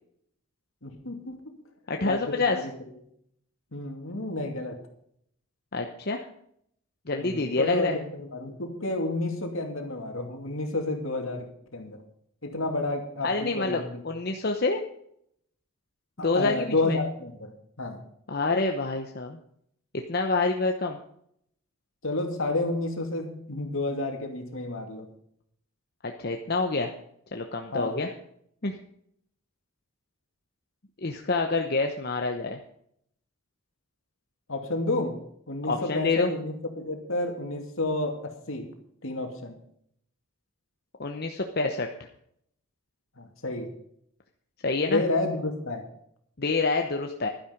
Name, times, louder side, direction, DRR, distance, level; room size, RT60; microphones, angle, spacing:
voice 1, 0.8-1.5 2.0-2.7 3.7-4.8 7.2-12.0 12.4-14.0 16.2-17.5 17.8-18.0 22.0-25.1 27.7-28.0 34.5-35.2 35.5-38.7 39.0-39.6 43.2-43.7 44.9-45.8, left 2 dB, 70° left, 4 dB, 2.5 m, -30 dB
voice 2, 1.9-2.6 5.7-6.2 7.1-8.0 13.2-14.8 16.2-17.0 18.3-19.4 20.1-21.0 26.0-26.9 27.3-28.1 28.6-28.8 31.0-32.6 35.7-36.3 41.0-41.9 44.6-45.0 46.4-47.3, left 3 dB, 45° left, 3 dB, 0.9 m, -27 dB
11.5 x 10.5 x 5.2 m, 0.69 s
head